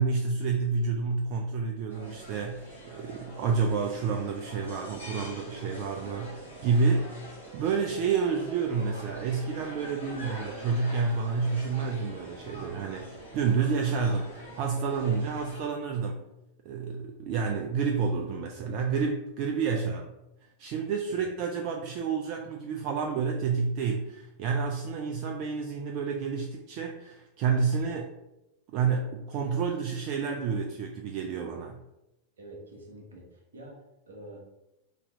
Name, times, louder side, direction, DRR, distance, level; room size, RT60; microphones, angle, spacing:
voice 1, 0.0-7.2 7.5-16.2 16.6-20.0 20.6-28.1 28.7-31.8, right 5 dB, 40° right, 3 dB, 0.4 m, -29 dB
sound 1, 1.9-15.6, right 1 dB, 85° left, 1.5 m, -44 dB
voice 2, 32.4-34.5, right 1 dB, 70° right, -1 dB, 1.1 m, -47 dB
3.9 x 2.9 x 3.5 m, 0.92 s
figure-of-eight pair, 90°, 0 cm